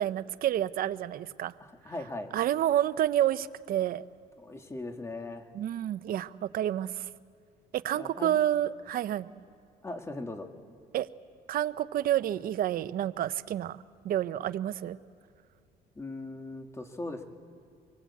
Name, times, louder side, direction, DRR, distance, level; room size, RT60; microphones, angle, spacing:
voice 1, 0.0-1.5 2.3-4.1 5.5-7.1 7.7-9.3 10.9-11.1 11.5-13.8 14.0-15.0, right 12 dB, 60° right, 14 dB, 0.7 m, -29 dB
voice 2, 1.6-2.3 4.4-5.5 7.9-8.4 9.8-10.5 16.0-17.2, left 2 dB, 15° left, 5 dB, 2.0 m, -39 dB
24.0 x 22.5 x 8.5 m, 2.5 s
cardioid pair, 110°, 17 cm